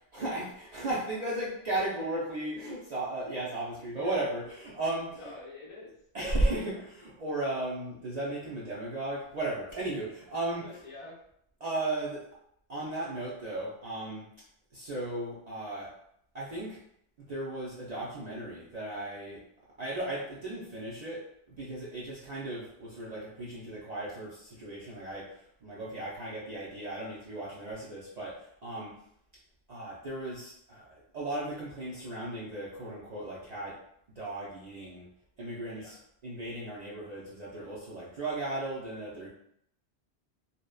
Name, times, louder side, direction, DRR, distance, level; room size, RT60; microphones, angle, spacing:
voice 1, 0.1-5.3 6.1-10.6 11.6-12.3 12.7-14.3 14.7-16.0 16.3-16.8 17.2-19.4 19.8-28.9 29.7-33.8 34.2-35.1 35.4-36.0 36.2-39.3, right 2 dB, 55° right, -6 dB, 0.5 m, -35 dB
voice 2, 5.2-6.4 6.7-6.8 10.5-11.2 28.7-29.0 35.7-36.0, left 2 dB, 45° left, -5 dB, 0.4 m, -48 dB
2.6 x 2.1 x 2.2 m, 0.70 s
omnidirectional pair, 1.1 m